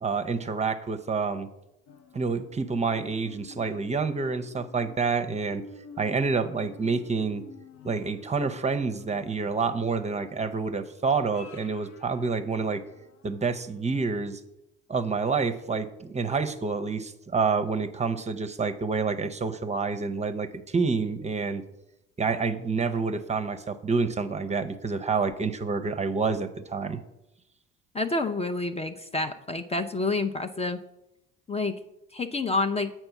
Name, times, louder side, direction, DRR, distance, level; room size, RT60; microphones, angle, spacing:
voice 1, 0.0-1.5 2.1-5.6 6.0-7.4 7.8-12.8 13.2-14.4 14.9-21.6 22.2-27.0, right 4 dB, 20° right, 9 dB, 0.7 m, -28 dB
sound 1, 1.9-13.3 13.8-13.9, left 5 dB, 80° left, 0.8 m, -50 dB
voice 2, 27.9-30.8 31.5-31.8 32.1-32.9, left 3 dB, 20° left, 7 dB, 0.5 m, -28 dB
7.8 x 4.5 x 5.8 m, 0.89 s
hypercardioid pair, 65°, 30 cm